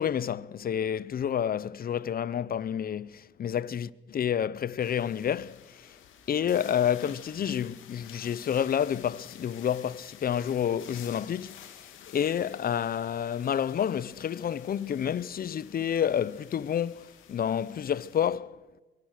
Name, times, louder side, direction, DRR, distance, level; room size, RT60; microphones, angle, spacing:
voice 1, 0.0-6.0 6.3-11.9 12.1-18.6, left 9 dB, 50° left, 0.8 m, -29 dB
sound 1, 4.8-18.3, left 9 dB, 85° left, 2.7 m, -51 dB
25.0 x 22.5 x 6.7 m
cardioid pair, 90°, 20 cm